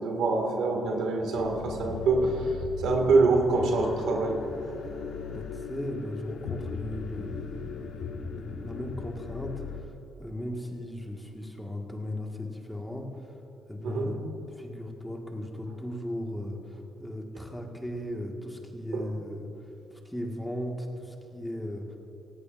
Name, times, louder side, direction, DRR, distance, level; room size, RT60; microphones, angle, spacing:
voice 1, 0.0-4.4 13.8-14.1 18.9-19.0, right 3 dB, 80° right, 1 dB, 2.1 m, -25 dB
sound 1, 1.3-9.8, left 6 dB, 75° left, 1.3 m, -38 dB
voice 2, 5.3-9.5 9.8-9.9 10.2-13.1 13.7-14.2 14.6-19.5 19.9-22.0, left 1 dB, 5° left, 0 dB, 1.8 m, -37 dB
17.5 x 16.0 x 2.6 m, 3.0 s
cardioid pair, 90°, 0 cm